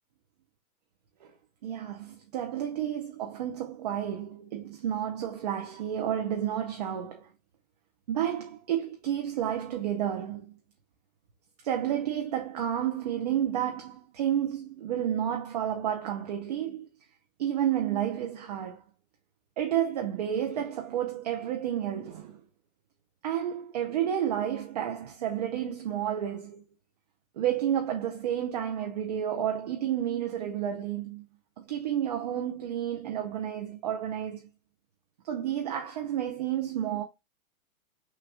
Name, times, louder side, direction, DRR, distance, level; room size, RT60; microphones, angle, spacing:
voice 1, 1.6-7.3 8.1-10.5 11.6-16.9 17.4-18.8 19.6-22.4 23.2-26.6 27.4-31.3 31.6-34.5 35.2-37.0, right 10 dB, 30° right, 0.4 m, -31 dB
6.0 x 2.2 x 3.5 m
hypercardioid pair, 155°, 43 cm